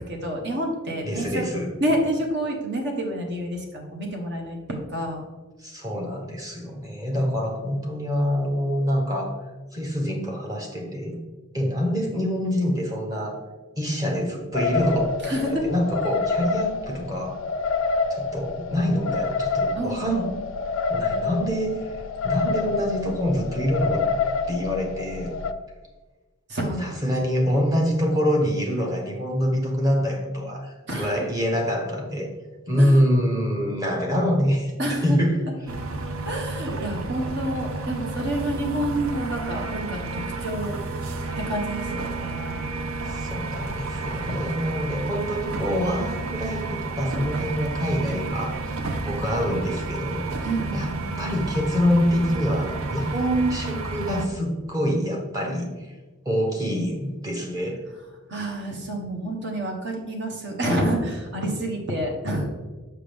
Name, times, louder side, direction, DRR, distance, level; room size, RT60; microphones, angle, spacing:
voice 1, 0.0-1.5 1.8-5.2 15.2-15.7 19.7-20.3 26.5-27.0 30.9-31.2 32.8-33.0 34.8-35.2 36.2-40.8 41.3-42.7 50.4-51.2 58.3-62.5, right 1 dB, 55° right, 1 dB, 1.2 m, -28 dB
voice 2, 1.0-1.7 5.6-9.3 9.7-11.2 11.5-13.4 13.8-17.3 18.1-20.3 20.9-22.0 22.2-24.0 24.5-25.3 26.8-32.3 32.7-34.7 35.0-35.4 43.0-48.8 49.0-50.3 50.7-50.9 51.2-55.9 56.2-57.8, equal, 15° right, 0 dB, 1.1 m, -25 dB
sound 1, 14.5-25.5, left 4 dB, 65° left, 0.4 m, -27 dB
sound 2, 35.7-54.3, right 3 dB, 80° right, 0.6 m, -31 dB
6.0 x 5.7 x 3.5 m, 1.3 s
head